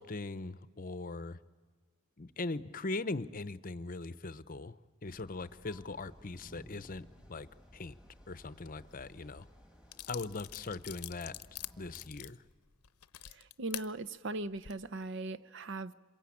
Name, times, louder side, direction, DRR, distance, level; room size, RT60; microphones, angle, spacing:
voice 1, 0.0-1.4 2.2-4.7 5.0-7.5 7.7-7.9 8.3-9.4 10.1-11.3 11.8-12.4, left 3 dB, 40° left, 0.7 m, -40 dB
sound 1, 5.0-12.1, equal, 5° right, 1.9 m, -57 dB
sound 2, 9.4-9.5 9.9-13.9 14.5-14.7, left 14 dB, 90° left, 0.8 m, -45 dB
voice 2, 13.2-15.9, right 2 dB, 55° right, 0.7 m, -39 dB
26.5 x 23.0 x 8.6 m
head